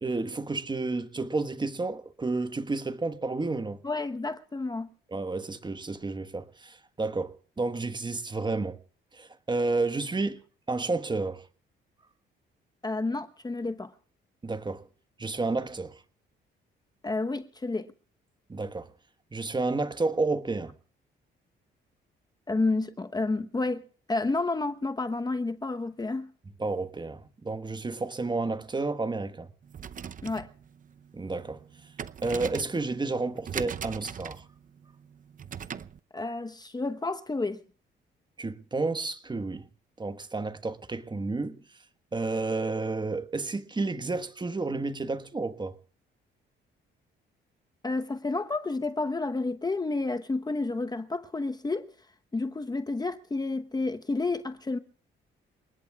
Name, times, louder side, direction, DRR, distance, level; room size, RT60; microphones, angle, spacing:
voice 1, 0.0-3.8 5.1-8.8 9.1-10.4 10.7-11.4 14.4-14.9 15.2-16.0 18.5-18.9 19.3-20.7 26.6-29.5 31.1-31.6 32.2-34.4 38.4-39.7 40.0-41.6 42.1-45.7, right 3 dB, 20° right, 1.4 m, -31 dB
voice 2, 3.8-4.9 12.8-13.9 17.0-17.9 22.5-23.8 24.1-26.3 30.2-30.5 36.1-37.6 47.8-51.9 52.3-54.8, left 3 dB, 20° left, 1.0 m, -30 dB
sound 1, 29.6-36.0, right 8 dB, 40° right, 0.7 m, -40 dB
29.0 x 19.0 x 2.4 m
cardioid pair, 90°, 20 cm